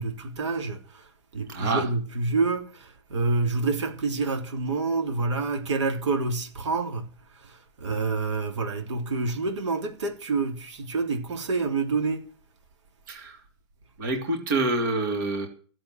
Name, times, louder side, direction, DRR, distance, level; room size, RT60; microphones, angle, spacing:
voice 1, 0.0-12.3, right 3 dB, 75° right, 3.4 m, -28 dB
voice 2, 1.5-1.8 13.1-13.4 14.0-15.5, right 2 dB, 40° right, 3.0 m, -27 dB
15.0 x 7.8 x 7.6 m
hypercardioid pair, 180°, 15 cm